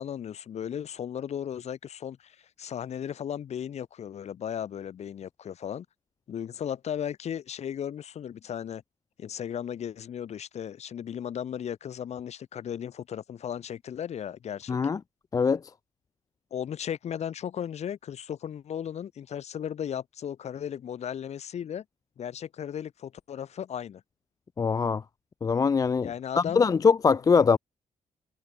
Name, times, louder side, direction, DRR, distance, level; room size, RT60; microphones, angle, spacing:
voice 1, 0.0-5.8 6.3-8.8 9.2-14.8 16.5-21.8 22.2-24.0 26.0-26.7, left 9 dB, 55° left, 3.2 m, -36 dB
voice 2, 14.7-15.0 15.3-15.6 24.6-25.0 25.4-26.1 26.4-27.6, left 5 dB, 25° left, 0.4 m, -22 dB
cardioid pair, 150°, 13 cm